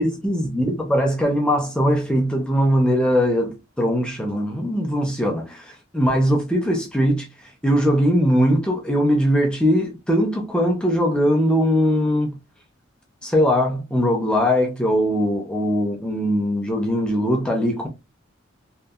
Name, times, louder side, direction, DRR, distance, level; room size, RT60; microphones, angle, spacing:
voice 1, 0.0-12.3 13.2-17.9, equal, 5° left, 0.4 m, -20 dB
2.7 x 2.5 x 2.3 m
head